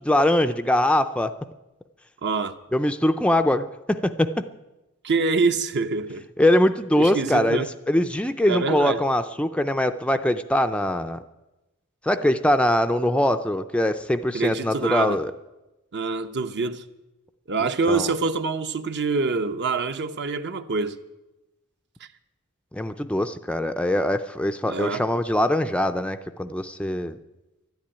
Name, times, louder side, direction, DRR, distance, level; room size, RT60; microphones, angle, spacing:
voice 1, 0.0-1.3 2.7-4.3 6.4-11.2 12.0-15.3 17.6-18.1 22.7-27.2, left 1 dB, 5° left, 0.4 m, -22 dB
voice 2, 2.2-2.5 5.0-6.2 7.0-7.7 8.5-9.0 14.3-15.2 15.9-16.8 17.5-21.0 24.7-25.0, right 4 dB, 50° right, 0.8 m, -25 dB
12.5 x 10.5 x 10.0 m
head